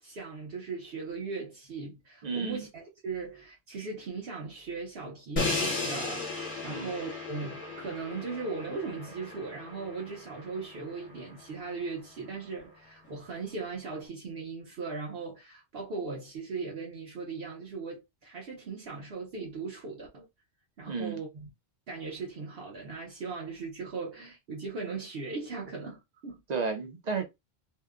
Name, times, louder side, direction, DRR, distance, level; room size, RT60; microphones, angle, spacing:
voice 1, 0.0-20.3 20.8-21.5 21.9-26.4, right 4 dB, 65° right, 0.9 m, -38 dB
voice 2, 2.2-2.6 6.7-6.9 20.9-21.2 26.5-27.2, right 5 dB, 50° right, 0.6 m, -32 dB
Crash cymbal, 5.4-11.3, left 3 dB, 35° left, 0.8 m, -35 dB
2.7 x 2.1 x 2.4 m
omnidirectional pair, 1.1 m